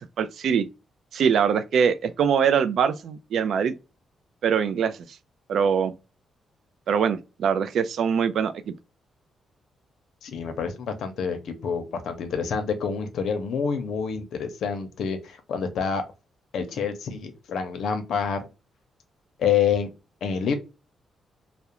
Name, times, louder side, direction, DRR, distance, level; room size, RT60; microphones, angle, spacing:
voice 1, 0.2-0.7 1.1-3.7 4.4-5.0 5.5-5.9 6.9-8.5, right 7 dB, 70° right, 0.3 m, -23 dB
voice 2, 10.2-16.0 16.5-18.5 19.4-19.9 20.2-20.5, left 6 dB, 75° left, 0.6 m, -27 dB
2.4 x 2.0 x 2.8 m
cardioid pair, 110°, 0 cm